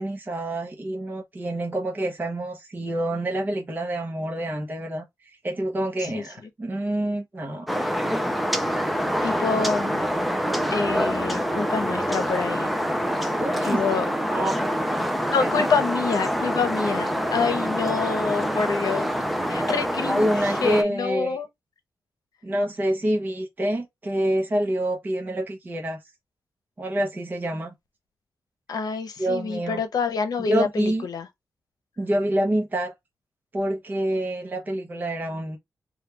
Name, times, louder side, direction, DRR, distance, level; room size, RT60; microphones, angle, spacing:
voice 1, 0.0-5.0 5.4-7.7 13.4-13.8 14.3-14.5 15.4-15.8 20.1-21.4 22.4-26.0 26.8-27.7 29.2-29.8 30.5-31.1 32.0-32.9 33.5-35.6, right 1 dB, 25° right, 0.8 m, -27 dB
sound 1, 7.7-20.8, equal, ahead, 0.4 m, -26 dB
voice 2, 9.2-10.0 10.7-12.7 13.7-14.0 15.3-19.1 19.5-21.5 28.7-31.3, left 5 dB, 75° left, 0.8 m, -27 dB
3.2 x 2.3 x 3.2 m
wide cardioid pair, 170°, 7 cm